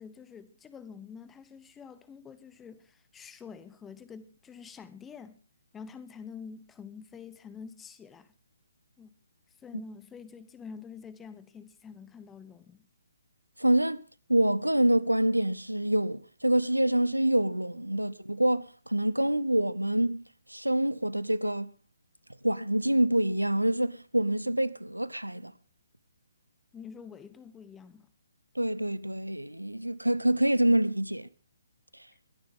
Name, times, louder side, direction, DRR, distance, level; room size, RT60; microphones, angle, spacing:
voice 1, 0.0-5.4 5.7-8.3 9.0-9.1 9.6-12.9 26.7-28.1, left 6 dB, 10° left, 1.0 m, -47 dB
voice 2, 13.6-14.0 14.3-21.7 22.4-25.5 28.5-31.3 31.9-32.1, right 1 dB, 85° right, 0.8 m, -26 dB
21.5 x 10.5 x 3.7 m
figure-of-eight pair, 135°, 0 cm